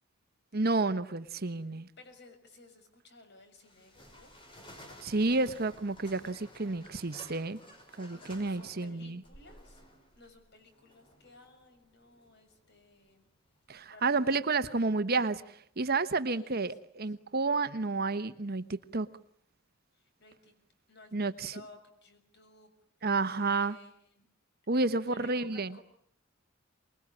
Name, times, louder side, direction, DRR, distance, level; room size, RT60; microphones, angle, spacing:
voice 1, 0.5-1.9 5.0-7.6 8.0-9.2 13.7-19.1 21.1-21.5 23.0-23.7 24.7-25.7, right 3 dB, 45° right, 1.1 m, -30 dB
voice 2, 2.0-4.3 8.1-9.8 10.1-13.3 13.9-14.4 16.3-17.1 19.9-20.5 20.9-22.7 23.4-24.3 24.7-25.8, left 2 dB, 55° left, 6.6 m, -57 dB
sound 1, 3.6-14.1, left 1 dB, 25° left, 5.7 m, -55 dB
25.5 x 21.5 x 9.8 m
head